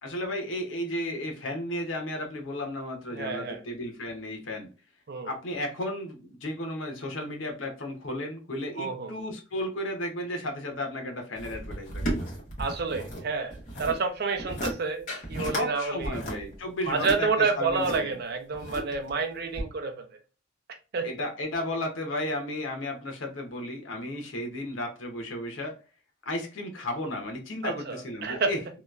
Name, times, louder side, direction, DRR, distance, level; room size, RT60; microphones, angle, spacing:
voice 1, 0.0-4.7 5.2-12.3 15.4-18.1 21.0-25.7 26.3-28.8, left 1 dB, 80° left, 0.8 m, -34 dB
voice 2, 3.1-3.6 5.1-5.3 8.8-9.1 12.6-16.2 16.9-20.0 20.9-21.1 27.6-28.5, right 4 dB, 55° right, 0.5 m, -29 dB
sound 1, 11.4-13.2 13.5-14.0 14.4-14.7 15.1-15.7 16.0-18.0 18.5-19.1 19.6-19.7, right 1 dB, 40° left, 1.0 m, -34 dB
2.9 x 2.2 x 2.3 m
head